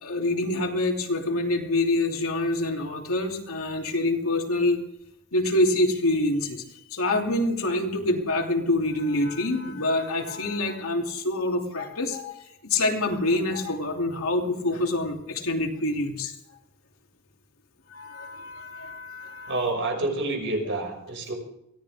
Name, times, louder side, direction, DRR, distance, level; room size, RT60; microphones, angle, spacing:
voice 1, 0.0-4.8 5.3-6.6 6.9-16.3 17.9-19.5, left 2 dB, 75° left, 1 dB, 2.9 m, -26 dB
voice 2, 19.5-21.3, right 2 dB, 60° right, 2 dB, 6.2 m, -28 dB
23.5 x 17.0 x 3.6 m, 0.79 s
head